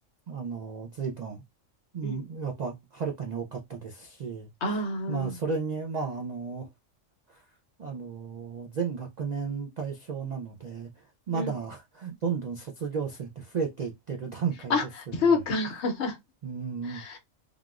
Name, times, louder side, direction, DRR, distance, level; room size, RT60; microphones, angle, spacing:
voice 1, 0.3-1.4 1.9-4.8 5.1-6.7 7.3-7.4 7.8-14.8 15.2-15.3 16.4-17.0, right 5 dB, 65° right, 0.4 m, -34 dB
voice 2, 4.6-5.4 11.3-11.5 14.7-14.8 15.1-16.2 16.9-17.2, left 3 dB, 65° left, 0.9 m, -27 dB
3.4 x 2.4 x 2.2 m
omnidirectional pair, 1.3 m